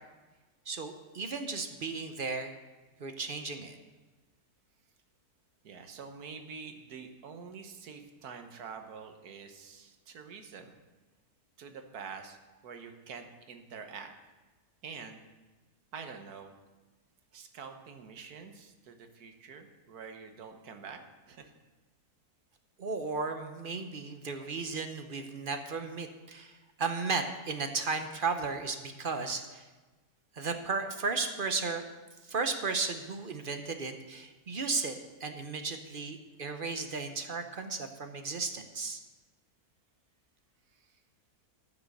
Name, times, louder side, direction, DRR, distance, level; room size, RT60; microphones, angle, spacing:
voice 1, 0.7-2.5 3.0-3.8 22.8-26.5 26.8-29.6 30.4-31.8 32.3-34.9 35.2-39.0, right 4 dB, 45° right, 7 dB, 0.8 m, -34 dB
voice 2, 5.6-10.8 11.6-14.1 14.8-15.2 15.9-16.5 17.3-21.0 21.3-21.5 40.7-40.9, right 5 dB, 80° right, 6 dB, 1.5 m, -46 dB
14.0 x 6.0 x 6.5 m, 1.2 s
omnidirectional pair, 1.6 m